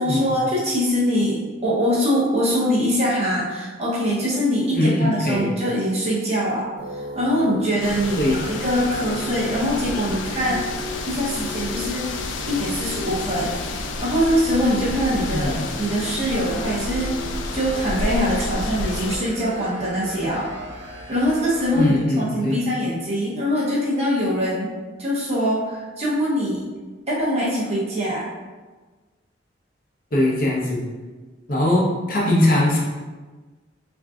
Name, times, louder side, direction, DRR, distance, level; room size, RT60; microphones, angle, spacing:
voice 1, 0.0-10.6 11.1-13.6 14.0-17.2 17.5-20.5 21.1-24.7 25.0-26.6 27.1-28.2, equal, 35° right, -6 dB, 0.7 m, -23 dB
voice 2, 4.7-5.5 8.2-8.4 15.3-15.6 21.7-22.6 30.1-30.8 31.5-32.8, left 1 dB, 45° left, -4 dB, 0.6 m, -21 dB
sound 1, 6.8-21.9, equal, 70° right, 0.6 m, -37 dB
sound 2, 7.8-19.2, left 3 dB, 80° left, 0.3 m, -30 dB
3.7 x 2.5 x 2.3 m, 1.3 s
head